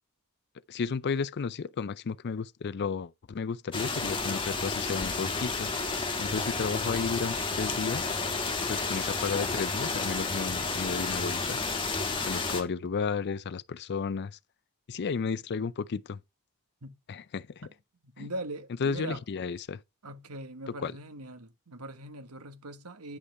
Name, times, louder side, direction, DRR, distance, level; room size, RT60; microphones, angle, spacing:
voice 1, 0.7-5.7 6.2-8.1 8.7-11.6 12.2-14.4 14.9-16.2 17.1-17.7 18.2-18.3 18.8-19.8 20.8-20.9, left 5 dB, 50° left, 0.4 m, -33 dB
sound 1, 3.7-12.6, left 3 dB, 25° left, 1.8 m, -31 dB
voice 2, 18.0-19.2 20.0-23.2, right 1 dB, 85° right, 1.5 m, -41 dB
9.8 x 5.4 x 4.6 m
head